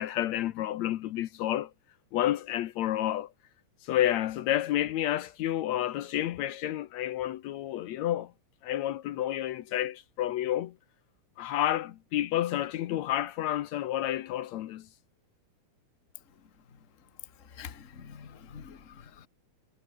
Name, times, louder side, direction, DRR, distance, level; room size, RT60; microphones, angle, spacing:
voice 1, 0.0-1.7 2.1-3.3 3.8-8.3 8.6-10.7 11.4-14.9, left 13 dB, 75° left, 2.1 m, -30 dB
voice 2, 17.5-19.3, left 7 dB, 30° left, 1.7 m, -46 dB
omnidirectional pair, 3.3 m